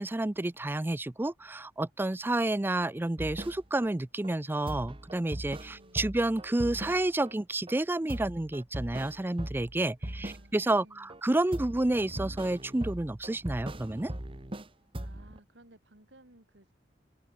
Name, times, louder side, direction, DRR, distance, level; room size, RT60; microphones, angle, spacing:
voice 1, 0.0-14.1, right 2 dB, 10° right, 0.4 m, -30 dB
Vitage Pop Beat, 3.2-3.9 4.2-4.3 4.7-7.3 7.7-7.8 8.1-10.8 11.1-14.7 14.9-15.4, right 1 dB, 30° right, 1.7 m, -40 dB
voice 2, 5.6-6.1 10.0-11.2 15.0-16.7, right 1 dB, 80° right, 5.8 m, -58 dB
head